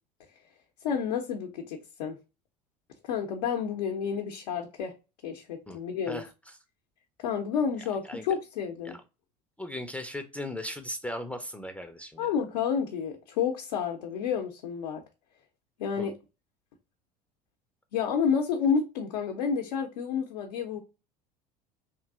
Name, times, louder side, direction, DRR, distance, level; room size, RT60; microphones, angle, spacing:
voice 1, 0.8-2.2 3.0-4.9 5.2-6.2 7.2-9.0 12.2-15.0 15.8-16.2 17.9-20.8, left 7 dB, 80° left, 0.6 m, -30 dB
voice 2, 9.6-12.3 16.0-16.1, left 1 dB, 5° left, 0.4 m, -37 dB
3.0 x 2.6 x 2.3 m
hypercardioid pair, 75°, 20 cm